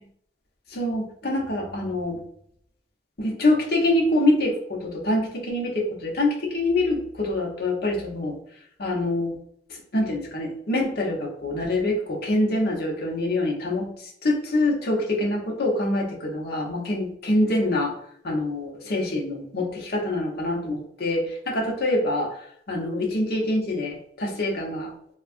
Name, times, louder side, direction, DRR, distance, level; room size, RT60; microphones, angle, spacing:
voice 1, 0.7-2.2 3.2-8.4 8.8-9.3 9.7-13.9 14.2-17.9 18.2-22.4 22.7-24.9, left 1 dB, 60° left, -2 dB, 0.8 m, -25 dB
3.5 x 2.3 x 2.4 m, 0.68 s
head